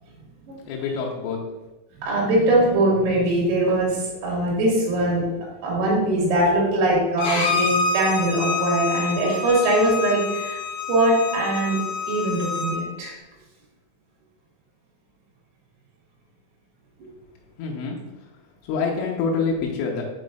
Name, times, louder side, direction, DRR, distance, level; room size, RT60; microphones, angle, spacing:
voice 1, 0.7-1.4 17.6-18.0 18.7-20.0, left 5 dB, 85° left, -1 dB, 3.2 m, -26 dB
voice 2, 2.0-5.3 5.6-10.6 10.9-11.8 12.1-13.2, right 1 dB, 90° right, -4 dB, 4.7 m, -21 dB
Bowed string instrument, 7.2-12.8, left 4 dB, 65° left, 2.6 m, -27 dB
8.3 x 5.1 x 2.4 m, 1.1 s
omnidirectional pair, 5.8 m